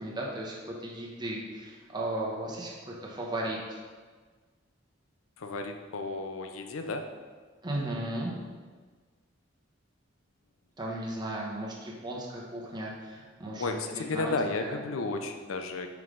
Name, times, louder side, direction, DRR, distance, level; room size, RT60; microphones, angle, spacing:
voice 1, 0.0-3.8 7.6-8.3 10.8-13.7 14.1-14.8, right 1 dB, 20° right, -3 dB, 0.9 m, -35 dB
voice 2, 5.4-7.1 13.6-15.9, left 3 dB, 85° left, 6 dB, 0.5 m, -33 dB
5.5 x 4.8 x 3.8 m, 1.5 s
head